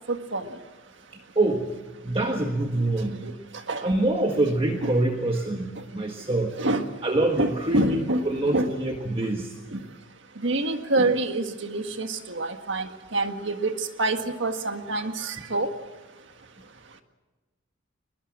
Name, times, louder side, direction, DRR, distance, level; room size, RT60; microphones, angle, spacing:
voice 1, 0.1-0.5 3.2-3.3 3.7-3.8 4.8-4.9 6.6-6.8 7.4-8.7 9.7-9.8 10.4-15.7, right 2 dB, 60° right, 6 dB, 1.8 m, -26 dB
voice 2, 1.1-1.7 2.0-3.2 3.8-6.6 7.0-9.5, right 2 dB, 25° right, 3 dB, 1.5 m, -25 dB
23.5 x 21.0 x 7.4 m, 1.2 s
head